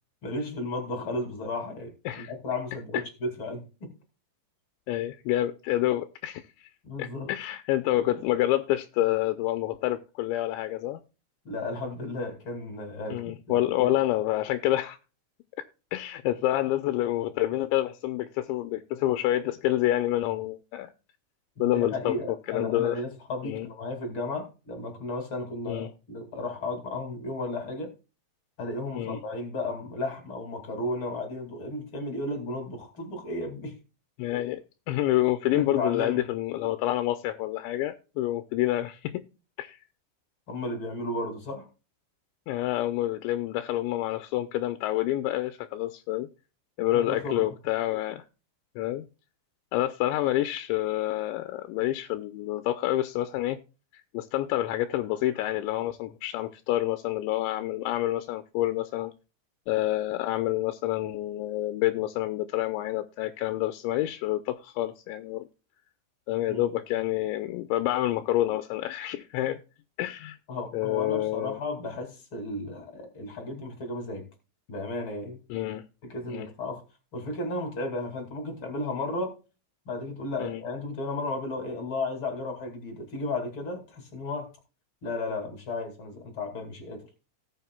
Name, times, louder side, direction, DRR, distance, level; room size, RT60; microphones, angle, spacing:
voice 1, 0.2-3.9 6.8-7.3 11.4-14.0 21.6-27.9 28.6-33.8 35.5-36.2 40.5-41.7 46.9-47.5 66.5-66.6 70.5-74.3 74.7-75.4 76.0-76.8 77.1-79.3 79.9-84.5 85.0-87.0, left 2 dB, 40° left, 4 dB, 2.2 m, -34 dB
voice 2, 4.9-6.7 7.0-11.0 13.1-15.0 15.9-20.9 21.6-22.2 22.5-23.0 23.4-23.7 25.7-25.9 29.0-29.2 34.2-39.2 39.6-39.8 42.5-46.3 46.8-48.2 48.8-49.0 49.7-53.6 54.1-59.1 59.7-65.5 66.3-69.6 70.0-70.4 70.7-71.6 75.5-75.9 76.3-76.5 80.4-80.6, left 14 dB, 80° left, 9 dB, 2.9 m, -28 dB
18.0 x 7.2 x 2.2 m, 0.32 s
omnidirectional pair, 5.4 m